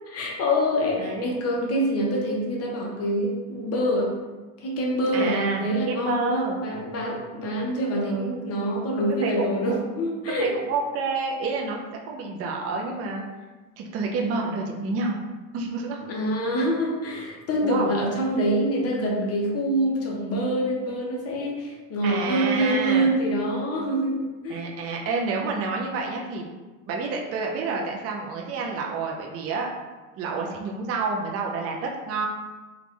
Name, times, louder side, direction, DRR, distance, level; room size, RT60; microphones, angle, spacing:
voice 1, 0.1-4.2 4.6-10.5 16.1-24.7, equal, 35° left, -1 dB, 0.9 m, -25 dB
voice 2, 1.0-1.3 5.1-6.6 8.0-8.4 9.2-10.0 10.4-11.8 12.1-13.2 13.8-15.2 15.5-16.0 17.6-17.9 22.0-23.1 24.5-26.5 26.9-29.7 30.2-32.3, right 4 dB, 35° right, 0 dB, 0.5 m, -29 dB
3.5 x 2.4 x 3.2 m, 1.2 s
supercardioid pair, 115°, 41 cm